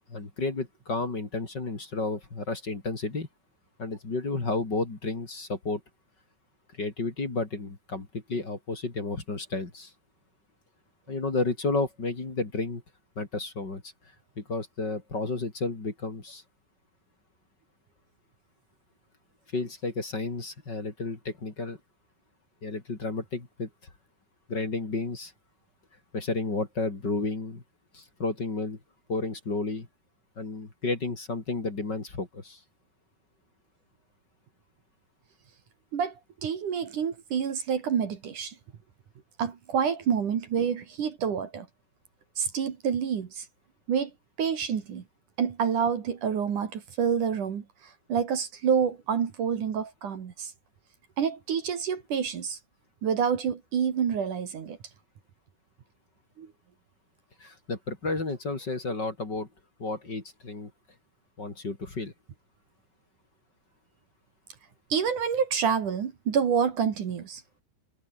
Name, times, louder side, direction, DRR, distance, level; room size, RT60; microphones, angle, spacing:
voice 1, 0.1-3.3 3.8-5.8 6.7-9.9 11.1-12.8 13.2-13.8 14.4-16.4 19.5-21.8 22.6-23.7 24.5-25.3 26.1-27.6 27.9-28.8 29.1-29.9 30.4-32.6 57.4-59.5 59.8-60.7 61.4-62.1, left 3 dB, 25° left, 3.9 m, -32 dB
voice 2, 35.9-38.5 39.4-41.7 42.4-43.4 43.9-44.1 44.4-45.0 45.4-50.5 51.2-52.6 53.0-54.8 56.4-56.5 64.9-67.4, right 7 dB, 55° right, 3.4 m, -28 dB
omnidirectional pair, 4.9 m